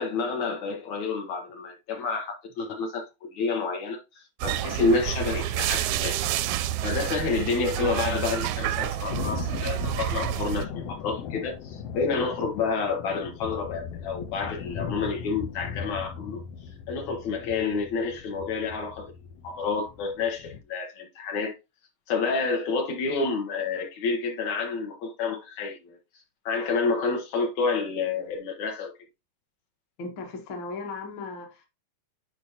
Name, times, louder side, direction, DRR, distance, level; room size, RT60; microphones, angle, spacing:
voice 1, 0.0-16.4 16.9-19.1 19.4-21.5 22.1-26.0 26.5-28.9, left 4 dB, 65° left, 2.4 m, -29 dB
sound 1, 4.4-10.6, right 11 dB, 80° right, 1.8 m, -29 dB
Thunder, 9.1-20.6, left 7 dB, 85° left, 1.4 m, -38 dB
voice 2, 30.0-31.7, left 3 dB, 50° left, 1.7 m, -37 dB
10.0 x 4.6 x 2.8 m
omnidirectional pair, 3.6 m